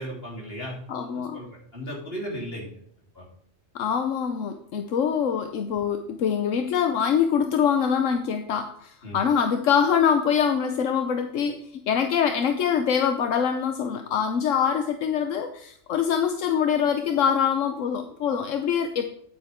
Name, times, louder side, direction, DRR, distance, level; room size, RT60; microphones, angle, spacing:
voice 1, 0.0-0.8 1.1-1.5 1.7-2.7 3.1-3.3 9.0-9.2, equal, 50° left, -3 dB, 3.7 m, -35 dB
voice 2, 0.9-1.4 3.7-11.6 11.9-19.1, left 7 dB, 85° left, 6 dB, 1.1 m, -24 dB
9.3 x 9.1 x 3.6 m, 0.67 s
omnidirectional pair, 1.3 m